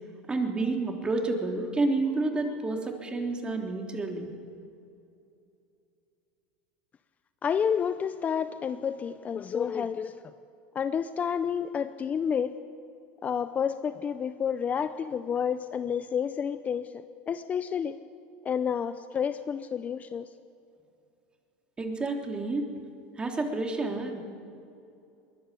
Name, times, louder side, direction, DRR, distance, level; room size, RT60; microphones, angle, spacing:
voice 1, 0.3-4.3 21.8-22.7 23.2-24.2, right 3 dB, 15° right, 3 dB, 3.4 m, -29 dB
voice 2, 7.4-10.3 10.7-12.5 13.2-18.0 18.4-20.3, left 7 dB, 25° left, 11 dB, 0.7 m, -30 dB
22.0 x 20.0 x 8.5 m, 2.6 s
supercardioid pair, 115°, 6 cm